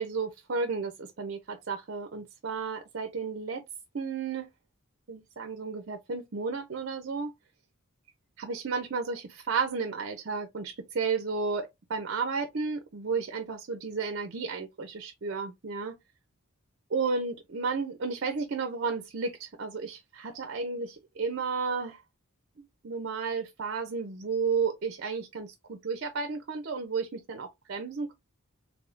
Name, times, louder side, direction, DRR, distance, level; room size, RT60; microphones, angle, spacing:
voice 1, 0.0-3.6 3.9-4.5 5.1-7.3 8.4-16.0 16.9-22.0 22.6-28.1, right 5 dB, 55° right, 0.5 m, -33 dB
3.6 x 3.5 x 2.4 m
head